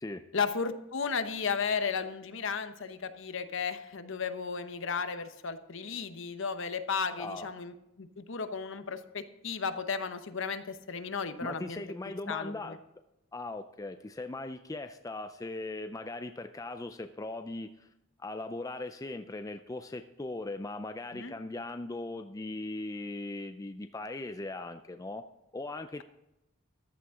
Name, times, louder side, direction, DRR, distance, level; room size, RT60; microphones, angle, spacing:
voice 1, 0.3-11.8 12.3-12.5 21.1-21.4, left 5 dB, 60° left, 10 dB, 0.9 m, -34 dB
voice 2, 7.2-7.5 11.4-12.8 13.3-17.9 18.2-25.2 25.5-26.0, left 2 dB, 15° left, 8 dB, 0.4 m, -39 dB
14.5 x 11.0 x 3.7 m, 0.90 s
head